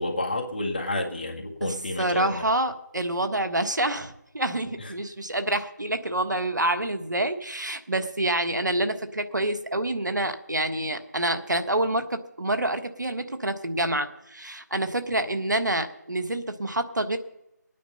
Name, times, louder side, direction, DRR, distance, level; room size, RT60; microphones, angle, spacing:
voice 1, 0.0-2.4 4.8-4.9, left 2 dB, 30° left, 0 dB, 1.8 m, -30 dB
voice 2, 1.6-17.2, right 1 dB, 75° right, 8 dB, 1.4 m, -27 dB
20.0 x 9.4 x 5.5 m, 0.87 s
figure-of-eight pair, 170°, 10 cm